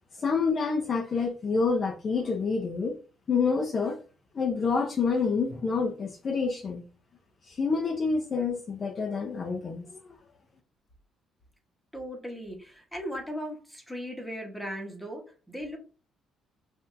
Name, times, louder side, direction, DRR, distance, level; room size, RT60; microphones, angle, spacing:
voice 1, 0.2-3.0 3.3-4.0 4.3-6.8 7.5-10.2, left 4 dB, 40° left, 0.7 m, -28 dB
voice 2, 11.9-15.8, equal, ahead, 1.4 m, -37 dB
5.6 x 2.7 x 2.7 m
cardioid pair, 120°, 0 cm